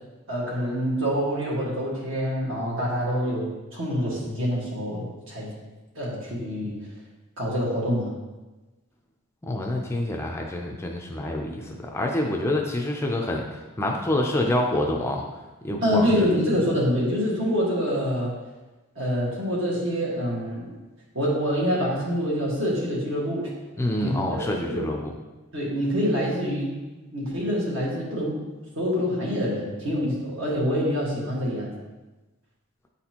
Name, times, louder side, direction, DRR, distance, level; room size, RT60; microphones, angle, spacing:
voice 1, 0.3-5.5 5.9-6.8 7.4-8.1 15.8-18.4 18.9-20.7 21.1-23.5 24.0-24.8 25.5-26.7 27.1-28.4 28.7-31.7, equal, 60° right, -4 dB, 1.7 m, -26 dB
voice 2, 9.4-15.2 15.6-16.1 23.8-25.1, left 1 dB, 10° left, 0 dB, 0.4 m, -27 dB
8.2 x 4.1 x 2.9 m, 1.1 s
head